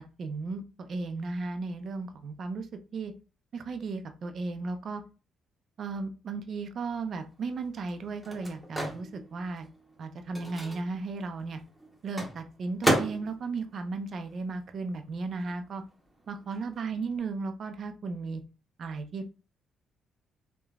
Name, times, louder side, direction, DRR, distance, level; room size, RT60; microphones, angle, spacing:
voice 1, 0.2-2.7 2.9-3.1 3.5-5.0 5.8-9.7 10.0-11.6 12.0-15.8 16.3-18.4 18.8-19.3, right 4 dB, 55° right, 7 dB, 0.4 m, -35 dB
Microwave oven, 6.9-15.0 15.3-17.2, right 1 dB, 5° right, 0.8 m, -35 dB
3.2 x 2.1 x 2.3 m, 0.33 s
cardioid pair, 90°, 0 cm